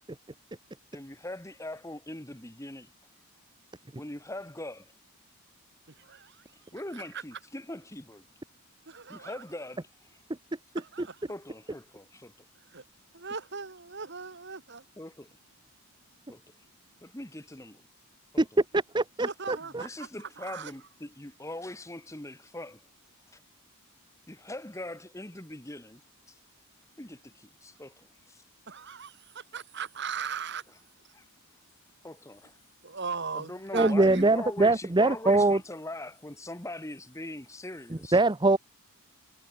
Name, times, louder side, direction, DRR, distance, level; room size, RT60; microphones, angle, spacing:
voice 1, 0.9-2.9 4.0-4.9 6.7-8.3 9.1-9.9 11.3-12.3 15.0-15.4 16.3-16.4 17.0-17.8 18.3-18.4 19.2-19.3 19.6-22.8 23.3-23.4 24.3-26.0 26.3-26.4 27.0-28.4 31.1-31.2 32.0-32.5 33.3-38.2, left 1 dB, 15° left, 1.7 m, -41 dB
voice 2, 6.0-6.4 6.9-7.2 8.9-9.4 10.8-11.2 12.7-12.8 13.1-14.8 19.3-20.1 20.4-20.7 28.7-30.6 32.8-34.3, right 5 dB, 50° right, 1.8 m, -38 dB
voice 3, 18.7-19.8 33.7-35.6 38.1-38.6, right 2 dB, 20° right, 0.7 m, -23 dB
head